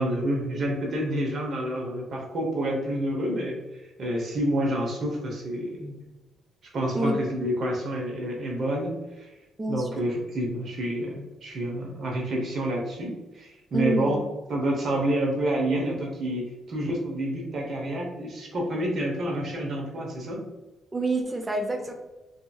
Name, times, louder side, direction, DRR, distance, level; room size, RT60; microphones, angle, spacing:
voice 1, 0.0-6.0 6.7-9.3 9.7-14.2 14.5-20.4, right 1 dB, 55° right, -1 dB, 0.8 m, -28 dB
voice 2, 9.6-9.9 13.7-14.2 20.9-21.9, right 1 dB, 25° right, 3 dB, 0.5 m, -27 dB
2.8 x 2.5 x 2.3 m, 1.1 s
cardioid pair, 90°, 0 cm